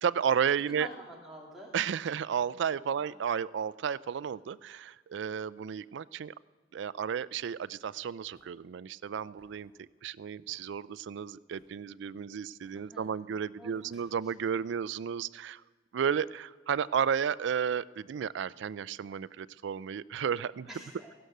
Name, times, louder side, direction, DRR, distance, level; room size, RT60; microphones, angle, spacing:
voice 1, 0.0-0.9 1.7-6.3 6.7-15.6 15.9-20.7, right 7 dB, 65° right, 19 dB, 0.3 m, -33 dB
voice 2, 0.7-1.7 3.0-3.1 12.7-13.3 13.6-14.1 20.7-21.1, equal, ahead, -4 dB, 2.8 m, -48 dB
sound 1, 7.3-14.9, left 1 dB, 35° left, 6.5 m, -69 dB
16.0 x 11.5 x 6.5 m, 1.4 s
head